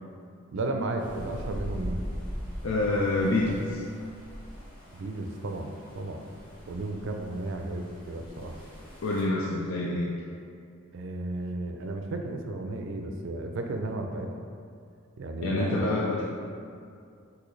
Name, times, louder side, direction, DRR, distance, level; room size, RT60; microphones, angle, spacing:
voice 1, 0.5-2.1 5.0-6.3 6.7-8.6 10.9-14.3 15.2-16.0, right 2 dB, 60° right, 4 dB, 0.4 m, -33 dB
sound 1, 1.0-9.2, equal, 25° left, 1.1 m, -41 dB
voice 2, 2.6-3.8 9.0-10.1 15.4-16.2, left 2 dB, 75° left, -3 dB, 0.4 m, -27 dB
6.1 x 2.8 x 3.1 m, 2.4 s
head